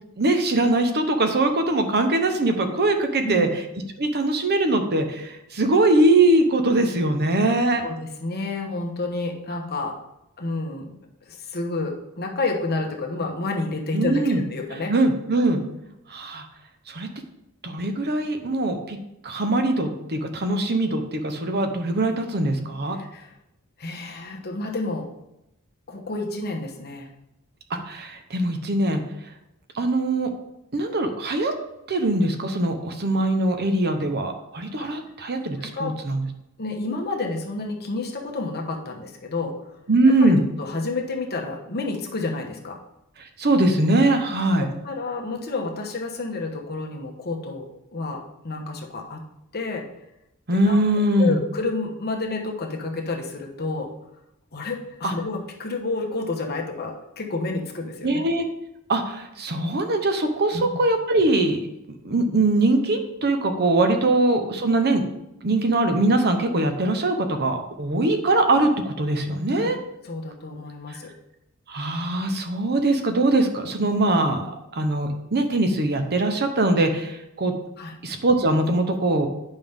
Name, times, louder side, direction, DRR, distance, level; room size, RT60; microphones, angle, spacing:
voice 1, 0.2-3.5 4.0-7.8 13.9-14.4 14.9-15.6 16.1-16.5 16.9-17.1 17.6-19.0 19.2-23.0 27.7-29.0 29.7-30.3 30.7-31.5 31.9-36.2 39.9-40.4 43.2-44.7 50.5-51.4 55.0-55.1 58.0-58.5 58.9-61.7 62.0-65.0 65.4-69.8 70.9-71.0 71.7-74.5 74.7-77.5 78.0-79.3, right 2 dB, 50° right, 6 dB, 0.9 m, -22 dB
voice 2, 7.8-10.0 10.4-10.9 11.2-14.9 22.9-23.3 23.8-25.1 25.9-27.1 34.8-34.9 35.6-36.0 36.6-39.6 40.2-40.3 40.6-42.8 44.6-49.2 49.5-49.9 50.5-50.8 51.2-53.9 54.5-58.2 60.5-60.8 69.6-69.7 70.0-71.1 77.8-77.9, left 3 dB, 45° left, 2 dB, 1.1 m, -30 dB
9.4 x 5.5 x 3.6 m, 0.87 s
head